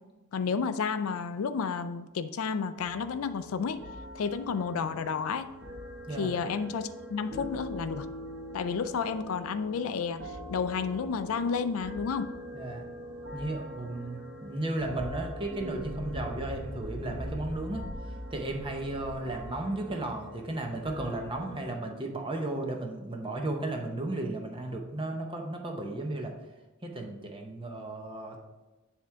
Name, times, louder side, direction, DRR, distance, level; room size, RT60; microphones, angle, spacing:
voice 1, 0.3-3.8 4.2-5.5 6.2-8.1 8.5-12.3, left 5 dB, 75° left, 11 dB, 0.4 m, -31 dB
sound 1, 2.8-21.7, equal, 50° right, 1.1 m, -44 dB
voice 2, 12.5-12.8 13.3-17.9 18.3-26.3 26.8-28.4, right 2 dB, 25° right, 2 dB, 0.7 m, -34 dB
sound 2, 14.8-19.5, equal, ahead, 2.1 m, -40 dB
7.4 x 3.6 x 5.6 m, 1.1 s
head